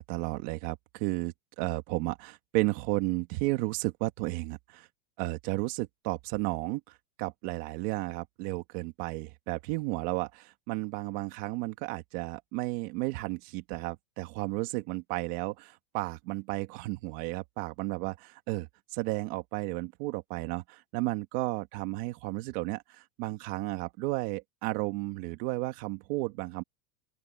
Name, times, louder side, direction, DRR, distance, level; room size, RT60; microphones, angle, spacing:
voice 1, 0.0-4.9 5.2-26.6, right 20 dB, 35° right, 1.6 m, -33 dB
open air
supercardioid pair, 165°, 46 cm